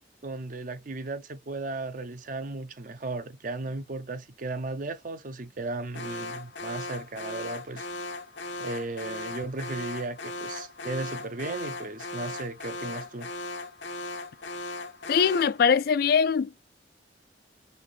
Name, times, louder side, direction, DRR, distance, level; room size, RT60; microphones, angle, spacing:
voice 1, 0.2-7.9 8.6-13.3, right 2 dB, 45° right, 0.6 m, -35 dB
Alarm, 5.9-15.6, left 2 dB, 80° left, 0.7 m, -38 dB
voice 2, 15.1-16.6, left 6 dB, 55° left, 0.3 m, -22 dB
4.2 x 3.5 x 3.3 m
head